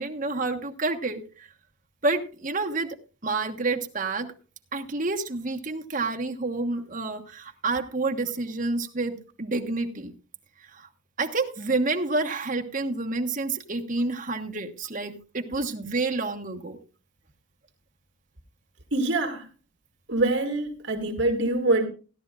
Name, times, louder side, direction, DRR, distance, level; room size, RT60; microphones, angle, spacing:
voice 1, 0.0-1.5 2.0-2.9 3.2-4.3 4.7-10.1 10.7-10.9 11.2-16.8, right 3 dB, 40° right, 3 dB, 1.3 m, -29 dB
voice 2, 18.9-19.5 20.1-21.9, right 2 dB, 60° right, 2 dB, 2.1 m, -24 dB
16.5 x 11.5 x 2.5 m, 0.36 s
head